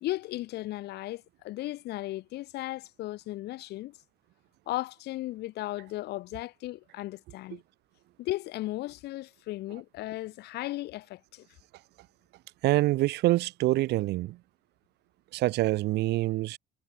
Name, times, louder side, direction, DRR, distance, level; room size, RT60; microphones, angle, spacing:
voice 1, 0.0-3.9 4.7-7.6 8.2-11.5, left 17 dB, 75° left, 1.0 m, -36 dB
voice 2, 12.6-14.4 15.3-16.6, right 17 dB, 80° right, 1.5 m, -26 dB
cardioid pair, 110°, 17 cm